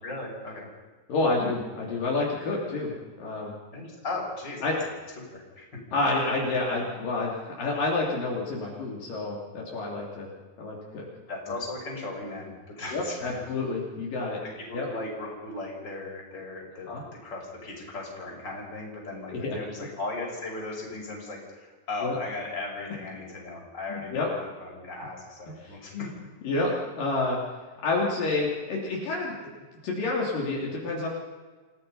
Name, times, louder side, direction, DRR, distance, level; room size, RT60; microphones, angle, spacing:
voice 1, 0.0-0.7 3.7-4.8 5.3-5.7 11.3-13.4 14.4-26.1, left 2 dB, 30° left, -2 dB, 6.3 m, -37 dB
voice 2, 1.1-2.9 3.2-3.5 4.6-4.8 5.9-10.3 10.6-11.1 12.9-14.4 14.7-14.9 16.9-17.0 19.3-19.6 22.0-22.1 23.9-24.3 25.6-26.1 26.4-27.4 27.8-29.4 29.8-31.1, left 3 dB, 65° left, -3 dB, 4.6 m, -29 dB
28.0 x 17.0 x 5.6 m, 1.3 s
omnidirectional pair, 4.2 m